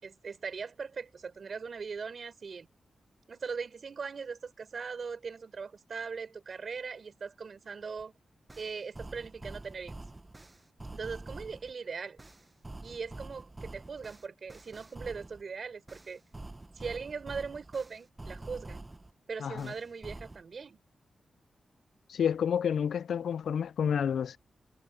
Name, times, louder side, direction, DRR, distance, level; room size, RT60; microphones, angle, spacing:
voice 1, 0.0-2.7 3.3-8.1 8.6-9.9 10.9-12.2 12.8-16.2 16.7-18.9 19.3-20.8, right 5 dB, 50° right, 4.3 m, -40 dB
sound 1, 8.0-8.1 8.5-11.7 12.2-15.4 15.9-19.1 19.6-20.4, right 2 dB, 20° right, 0.7 m, -46 dB
voice 2, 19.4-19.7 22.1-24.4, left 8 dB, 90° left, 0.4 m, -29 dB
wide cardioid pair, 120°, 0 cm